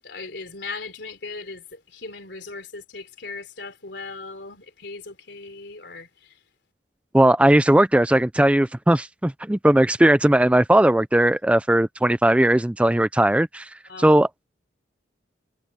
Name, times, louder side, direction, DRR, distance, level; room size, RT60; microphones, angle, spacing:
voice 1, 0.0-6.4 13.9-14.1, left 3 dB, 65° left, 3.8 m, -38 dB
voice 2, 7.1-13.7 14.0-14.4, right 1 dB, 5° right, 0.4 m, -18 dB
head